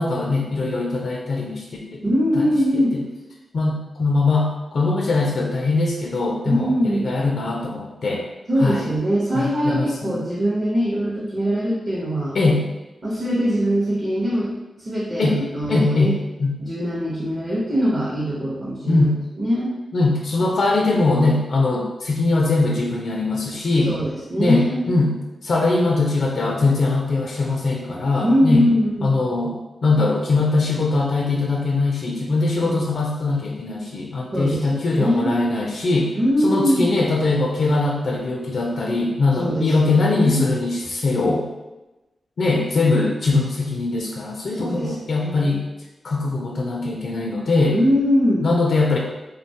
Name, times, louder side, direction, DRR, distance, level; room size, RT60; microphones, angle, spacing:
voice 1, 0.0-1.7 1.9-2.0 2.3-2.8 3.5-8.2 8.6-8.9 9.3-10.2 12.3-12.6 15.2-15.4 15.7-16.5 18.9-19.2 19.9-23.9 24.4-25.1 25.4-28.6 29.0-36.1 36.4-41.4 42.4-45.6 46.0-47.8 48.4-49.0, left 3 dB, 60° left, -1 dB, 0.3 m, -21 dB
voice 2, 2.0-3.0 6.4-7.1 8.5-12.4 13.0-14.5 14.8-16.1 16.6-19.1 19.4-19.7 23.8-24.8 28.2-29.1 32.6-32.9 34.3-35.3 36.1-36.9 39.4-40.5 44.5-45.6 47.7-48.5, equal, 35° right, -7 dB, 0.6 m, -22 dB
3.1 x 2.1 x 2.7 m, 1.1 s
wide cardioid pair, 105°, 0 cm